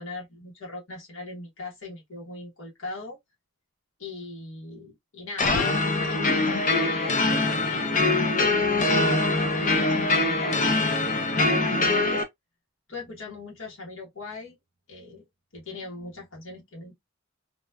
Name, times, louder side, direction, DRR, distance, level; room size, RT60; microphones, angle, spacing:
voice 1, 0.0-3.2 4.0-8.1 8.8-10.6 11.0-12.2 12.9-14.6 14.9-15.2 15.5-16.9, left 2 dB, 80° left, 1.2 m, -40 dB
sound 1, 5.4-12.2, left 2 dB, 40° left, 0.5 m, -23 dB
2.9 x 2.2 x 2.2 m
head